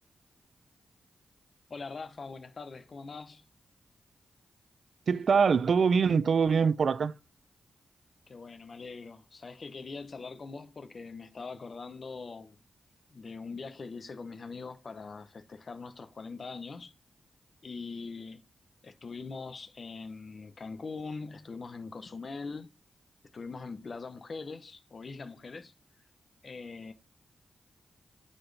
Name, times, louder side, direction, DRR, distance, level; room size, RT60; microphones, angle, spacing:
voice 1, 1.7-3.5 8.3-12.6 13.1-16.9 17.6-18.5 18.8-22.7 23.3-25.7 26.4-26.9, left 4 dB, 55° left, 0.9 m, -42 dB
voice 2, 5.1-7.1, right 6 dB, 65° right, 0.4 m, -24 dB
9.9 x 4.3 x 3.3 m
cardioid pair, 50°, 0 cm